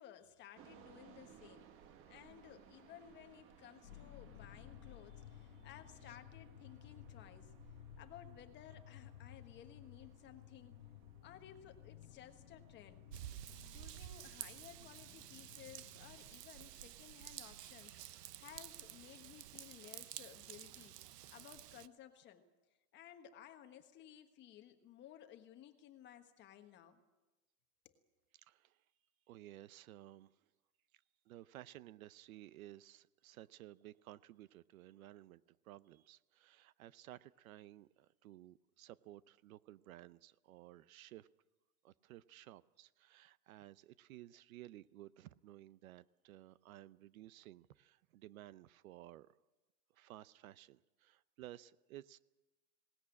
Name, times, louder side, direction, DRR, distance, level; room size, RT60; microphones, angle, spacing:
voice 1, 0.0-1.8 2.1-7.5 8.0-10.9 11.2-13.1 13.7-22.4 22.9-27.0 27.8-28.0, left 10 dB, 25° left, 8 dB, 1.3 m, -57 dB
sound 1, 0.5-13.3, right 8 dB, 25° right, 1.3 m, -63 dB
sound 2, 3.8-16.3, left 12 dB, 90° left, 1.1 m, -57 dB
Raindrop / Vehicle horn car horn honking / Trickle dribble, 13.1-21.9, right 12 dB, 80° right, 1.1 m, -51 dB
voice 2, 28.3-28.8 29.3-30.4 31.3-41.3 41.8-49.3 49.9-52.2, right 14 dB, 60° right, 18 dB, 0.7 m, -56 dB
20.5 x 18.5 x 8.5 m, 1.1 s
supercardioid pair, 160°, 47 cm